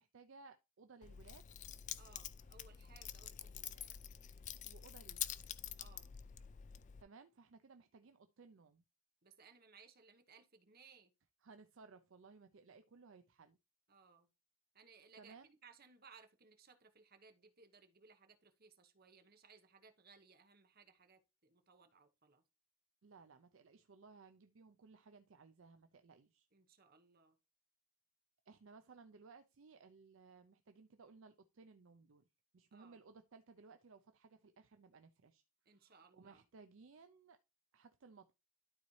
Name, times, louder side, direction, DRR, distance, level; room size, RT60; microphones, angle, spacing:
voice 1, 0.0-1.5 4.6-5.4 7.0-8.8 11.4-13.6 15.2-15.5 23.0-26.5 28.5-32.3 32.5-37.4 37.7-38.3, right 4 dB, 60° right, 0.5 m, -61 dB
Keys jangling, 1.0-7.0, left 10 dB, 35° left, 0.3 m, -47 dB
voice 2, 2.0-4.0 5.8-6.1 9.2-11.1 13.9-14.3 14.7-22.4 26.5-27.4 32.7-33.0 35.6-36.5, right 5 dB, 45° right, 1.0 m, -64 dB
12.0 x 4.1 x 3.1 m
head